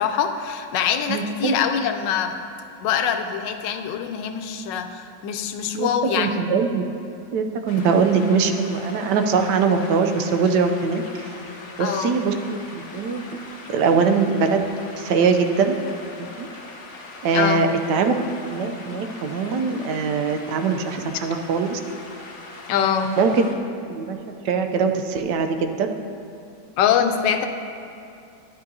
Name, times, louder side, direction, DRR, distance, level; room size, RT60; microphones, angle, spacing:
voice 1, 0.0-2.3 2.8-6.4 7.8-7.9 11.8-12.2 17.3-17.7 22.7-23.2 26.8-27.5, left 8 dB, 80° left, 7 dB, 1.3 m, -24 dB
voice 2, 1.1-1.6 5.7-5.9 6.2-6.8 7.3-11.3 11.8-13.2 13.7-14.7 15.0-15.8 16.2-16.5 17.2-18.2 18.5-21.8 23.2-23.5 23.9-24.2 24.4-25.9, right 5 dB, 75° right, 6 dB, 1.2 m, -22 dB
sound 1, 7.7-23.6, left 2 dB, 50° left, 0.7 m, -41 dB
11.5 x 9.9 x 2.7 m, 2.5 s
omnidirectional pair, 1.9 m